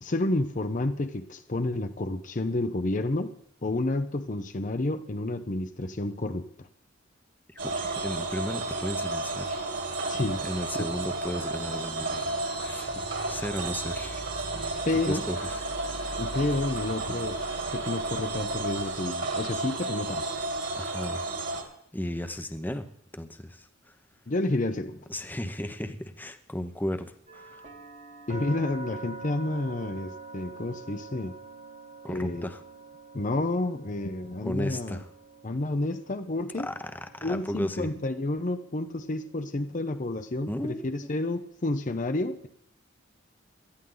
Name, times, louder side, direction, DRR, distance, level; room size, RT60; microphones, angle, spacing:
voice 1, 0.0-3.3 3.6-6.7 10.1-10.4 10.8-10.9 13.0-13.1 14.9-15.2 16.2-17.4 17.7-20.3 24.3-25.0 28.3-31.4 32.1-32.5 33.1-35.0 35.4-36.7 37.2-42.5, left 2 dB, 40° left, 8 dB, 0.7 m, -30 dB
voice 2, 7.5-9.7 10.4-12.9 13.3-14.2 15.1-15.6 20.8-21.2 21.9-22.9 23.1-24.0 25.1-27.7 32.0-32.6 34.4-35.1 36.5-37.9 40.5-41.1, left 1 dB, 10° left, 8 dB, 0.9 m, -35 dB
sound 1, 7.6-21.6, right 2 dB, 60° right, 2.9 m, -32 dB
sound 2, 11.2-21.7, left 3 dB, 75° left, 2.8 m, -51 dB
sound 3, 27.3-41.1, right 3 dB, 35° right, 1.4 m, -47 dB
18.0 x 13.0 x 3.9 m, 0.72 s
head